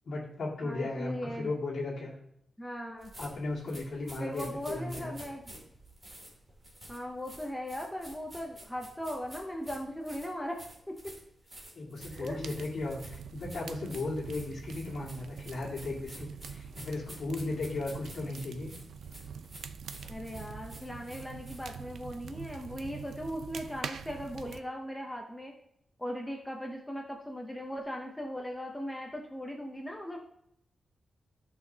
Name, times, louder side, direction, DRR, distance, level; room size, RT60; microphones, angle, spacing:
voice 1, 0.1-2.1 3.2-5.1 11.7-18.7, left 2 dB, 55° left, -6 dB, 2.1 m, -36 dB
voice 2, 0.6-1.5 2.6-3.1 4.2-5.4 6.9-10.6 10.9-11.0 12.1-12.4 20.1-25.5 26.0-30.2, equal, 5° left, 1 dB, 0.7 m, -38 dB
sound 1, 3.0-21.8, right 1 dB, 20° right, 2.6 m, -50 dB
sound 2, 12.0-24.6, right 6 dB, 85° right, 0.5 m, -44 dB
13.0 x 5.9 x 2.8 m, 0.78 s
wide cardioid pair, 175°, 0 cm